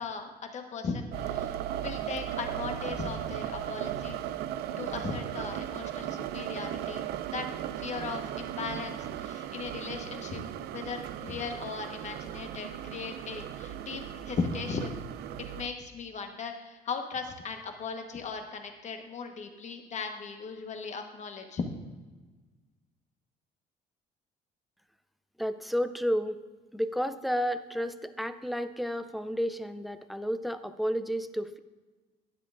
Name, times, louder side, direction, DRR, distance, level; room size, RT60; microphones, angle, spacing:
voice 1, 0.0-1.5 1.8-4.2 4.8-7.5 7.8-10.4 10.7-15.0 15.5-21.6, left 5 dB, 45° left, 5 dB, 1.2 m, -37 dB
sound 1, 1.1-15.7, right 11 dB, 70° right, 0.4 m, -37 dB
voice 2, 25.4-26.4 26.7-31.6, equal, ahead, 11 dB, 0.4 m, -31 dB
11.5 x 9.6 x 2.5 m, 1.3 s
cardioid pair, 110°, 17 cm